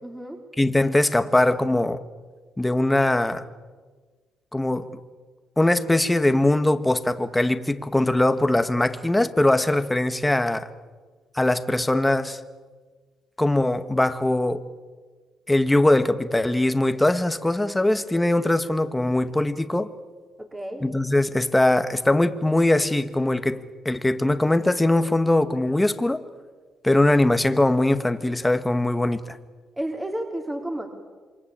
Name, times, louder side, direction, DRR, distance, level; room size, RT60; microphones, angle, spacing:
voice 1, 0.0-0.4 20.4-20.9 29.7-30.9, right 1 dB, 15° right, 2 dB, 3.9 m, -31 dB
voice 2, 0.6-2.0 2.6-3.4 4.5-4.9 5.6-10.7 11.3-12.4 13.4-14.6 15.5-19.9 20.8-26.2 26.8-29.4, left 1 dB, 10° left, 10 dB, 1.6 m, -21 dB
27.5 x 24.0 x 8.8 m, 1.4 s
cardioid pair, 90°, 0 cm